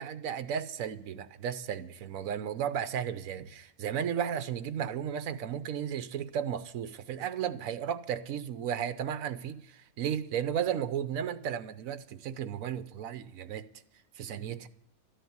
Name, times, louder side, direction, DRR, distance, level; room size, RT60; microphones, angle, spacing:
voice 1, 0.0-13.7 14.2-14.7, right 9 dB, 65° right, 1.2 m, -34 dB
13.0 x 10.0 x 9.5 m
omnidirectional pair, 1.6 m